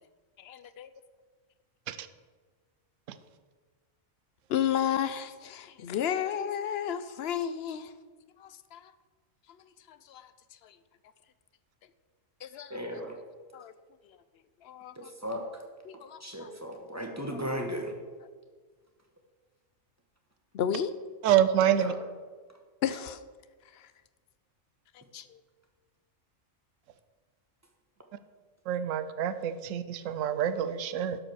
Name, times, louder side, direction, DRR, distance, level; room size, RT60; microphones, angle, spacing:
voice 1, 0.4-0.9 4.5-7.9 8.4-8.9 9.9-10.3 10.6-10.8 12.4-13.0 13.5-13.7 14.1-14.2 14.6-15.1 15.8-16.5 17.3-17.4 20.5-20.9 22.8-23.2 23.7-23.9 25.1-25.4, left 9 dB, 60° left, 13 dB, 0.7 m, -33 dB
voice 2, 12.7-13.2 15.0-15.5 16.2-17.9 21.7-21.9, equal, 15° right, 2 dB, 1.2 m, -36 dB
voice 3, 21.2-21.9 28.7-31.2, right 10 dB, 80° right, 12 dB, 1.0 m, -26 dB
12.0 x 5.0 x 6.3 m, 1.5 s
omnidirectional pair, 1.3 m